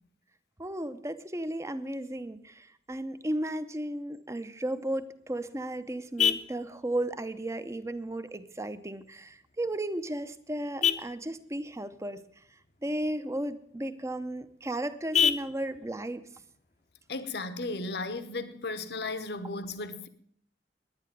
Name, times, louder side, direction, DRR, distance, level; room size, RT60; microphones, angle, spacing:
voice 1, 0.6-12.2 12.8-16.2, right 1 dB, 15° right, 0.7 m, -34 dB
Vehicle horn car horn honking, 4.9-17.9, left 8 dB, 45° left, 0.8 m, -35 dB
voice 2, 17.1-20.1, left 3 dB, 70° left, 1.0 m, -35 dB
10.5 x 10.0 x 9.1 m
head